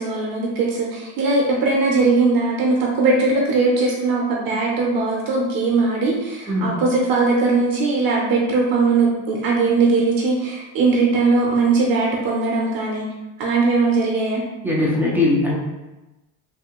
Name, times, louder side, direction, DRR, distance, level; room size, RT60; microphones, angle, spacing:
voice 1, 0.0-13.1 13.4-14.4, right 3 dB, 50° right, -2 dB, 0.7 m, -19 dB
voice 2, 14.6-15.5, left 2 dB, 5° right, -6 dB, 0.3 m, -19 dB
3.4 x 2.7 x 2.9 m, 1.0 s
cardioid pair, 160°, 45 cm